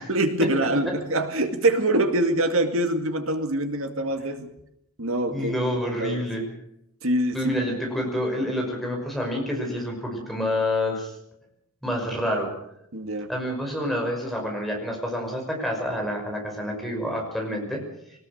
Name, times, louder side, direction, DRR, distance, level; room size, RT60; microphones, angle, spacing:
voice 1, 0.1-4.5 5.0-5.5 6.0-6.5 7.0-7.4 12.9-13.3, right 1 dB, 65° right, 7 dB, 2.2 m, -24 dB
voice 2, 5.3-6.4 7.3-11.1 11.8-12.5 13.3-17.8, left 1 dB, ahead, 0 dB, 5.7 m, -28 dB
22.5 x 19.5 x 6.6 m, 0.77 s
head